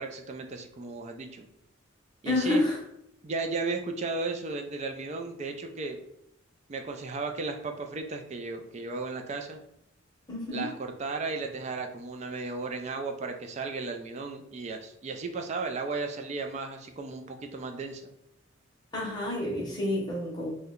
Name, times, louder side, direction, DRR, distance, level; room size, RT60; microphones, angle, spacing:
voice 1, 0.0-1.5 2.2-2.6 3.2-6.0 6.7-9.6 10.5-18.0, right 3 dB, 30° right, 5 dB, 0.3 m, -35 dB
voice 2, 2.3-2.8 10.3-10.7 18.9-20.6, left 1 dB, 20° left, -3 dB, 0.7 m, -29 dB
2.7 x 2.1 x 3.6 m, 0.78 s
head